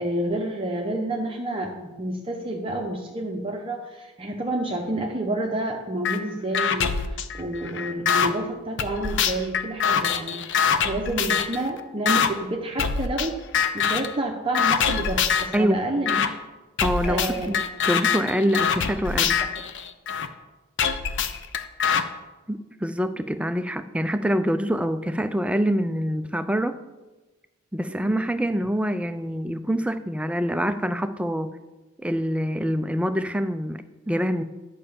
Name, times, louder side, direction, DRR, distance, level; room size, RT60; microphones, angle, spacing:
voice 1, 0.0-13.4 13.7-16.3 17.0-17.5 18.4-18.6 19.4-19.5 27.9-28.3, right 1 dB, 25° right, 0 dB, 0.8 m, -29 dB
sound 1, 6.0-6.2 6.5-8.3 8.8-11.6 12.1-12.3 12.8-13.3 13.5-14.1 14.5-15.6 16.1-16.3 16.8-20.3 20.8-22.0, left 7 dB, 60° left, 0.6 m, -24 dB
voice 2, 15.5-16.3 16.8-17.6 17.9-19.4 22.5-26.8 27.7-31.5 32.0-34.4, equal, 5° right, 10 dB, 0.4 m, -25 dB
11.0 x 5.5 x 7.0 m, 1.2 s
head